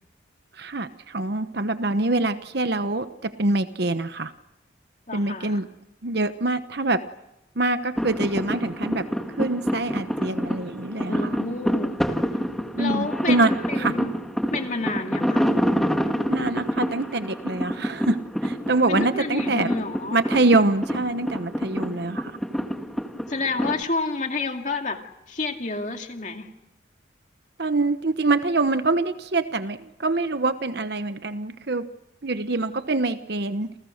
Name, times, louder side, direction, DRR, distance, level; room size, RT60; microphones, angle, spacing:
voice 1, 0.6-4.3 5.1-5.7 6.0-7.1 7.6-9.1 9.4-11.4 12.8-13.5 13.8-13.9 16.3-19.7 20.1-22.3 27.6-31.9 32.2-33.7, right 2 dB, 55° right, 11 dB, 1.0 m, -25 dB
voice 2, 5.1-5.6 11.1-11.9 12.8-14.1 14.5-15.5 18.9-20.2 21.8-22.1 23.3-25.0 25.3-26.5, left 3 dB, 40° left, 4 dB, 2.4 m, -29 dB
sound 1, 8.0-23.8, equal, ahead, 1.7 m, -27 dB
29.0 x 28.0 x 6.6 m, 0.90 s
head